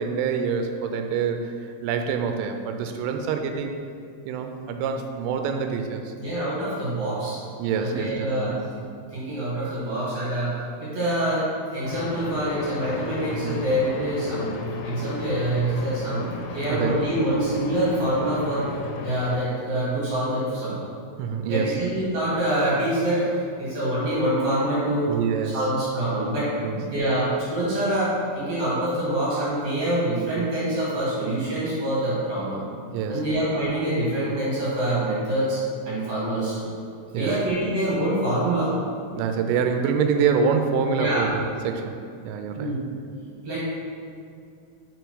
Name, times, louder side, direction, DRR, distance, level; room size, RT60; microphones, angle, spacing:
voice 1, 0.0-1.5 1.8-3.8 4.3-6.1 7.6-8.6 13.4-13.6 16.7-17.0 21.2-21.8 25.1-25.6 26.6-26.8 32.9-33.3 37.1-37.4 39.1-42.8, right 6 dB, 90° right, 6 dB, 3.2 m, -26 dB
voice 2, 6.2-7.4 7.8-8.5 9.1-10.5 10.8-11.4 11.7-14.5 14.8-18.7 19.0-20.7 21.5-25.1 25.5-32.7 33.1-35.6 35.9-36.5 37.1-39.0 41.0-41.2 42.6-42.8 43.4-43.6, right 1 dB, 60° right, -9 dB, 1.8 m, -25 dB
sound 1, 11.8-19.4, left 5 dB, 80° left, 2.8 m, -35 dB
6.8 x 4.4 x 4.6 m, 2.4 s
omnidirectional pair, 5.7 m